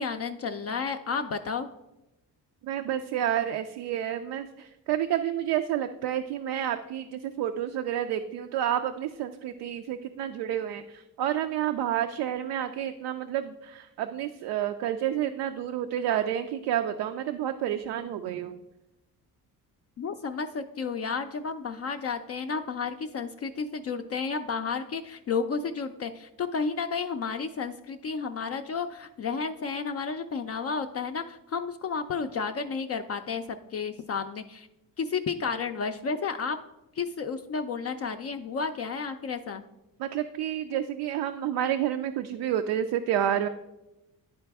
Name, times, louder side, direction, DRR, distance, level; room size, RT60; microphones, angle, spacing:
voice 1, 0.0-1.7 20.0-34.7 35.0-36.6 36.9-39.6, left 5 dB, 40° left, 6 dB, 0.4 m, -32 dB
voice 2, 2.6-18.6 40.0-43.5, right 10 dB, 75° right, 7 dB, 0.5 m, -29 dB
11.0 x 4.0 x 3.4 m, 0.95 s
cardioid pair, 95°, 39 cm